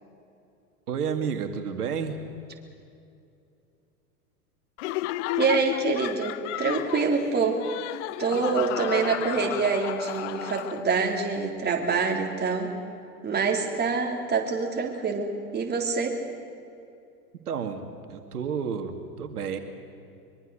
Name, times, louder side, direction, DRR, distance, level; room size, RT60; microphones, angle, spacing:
voice 1, 0.9-2.2 17.5-19.6, right 6 dB, 70° right, 6 dB, 2.2 m, -31 dB
Laughter, 4.8-11.1, left 15 dB, 50° left, 0.7 m, -32 dB
voice 2, 5.4-7.6 8.2-12.7 13.2-16.2, right 5 dB, 20° right, 1 dB, 3.6 m, -26 dB
24.0 x 23.5 x 6.6 m, 2.6 s
figure-of-eight pair, 90°, 46 cm